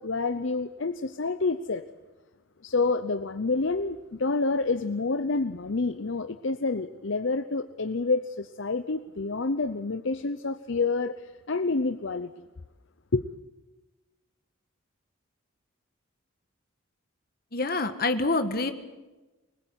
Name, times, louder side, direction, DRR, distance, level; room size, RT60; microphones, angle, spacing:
voice 1, 0.0-1.8 2.6-12.4 13.1-13.3, left 3 dB, 60° left, 9 dB, 0.7 m, -28 dB
voice 2, 17.5-18.7, left 3 dB, 45° left, 8 dB, 1.6 m, -26 dB
24.5 x 21.0 x 8.2 m, 1.2 s
head